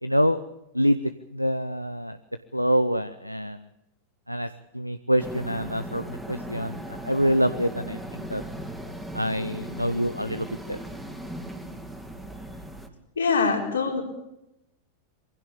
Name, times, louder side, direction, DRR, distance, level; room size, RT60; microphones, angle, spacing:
voice 1, 0.0-0.4 0.7-1.0 1.3-2.2 2.5-3.6 4.3-4.5 4.7-8.4 9.1-10.8, equal, 90° left, 11 dB, 0.7 m, -26 dB
sound 1, 5.2-12.9, right 1 dB, ahead, 2.8 m, -38 dB
voice 2, 13.2-14.0, left 4 dB, 70° left, 2 dB, 4.4 m, -23 dB
23.5 x 16.0 x 8.6 m, 0.90 s
figure-of-eight pair, 90°, 0 cm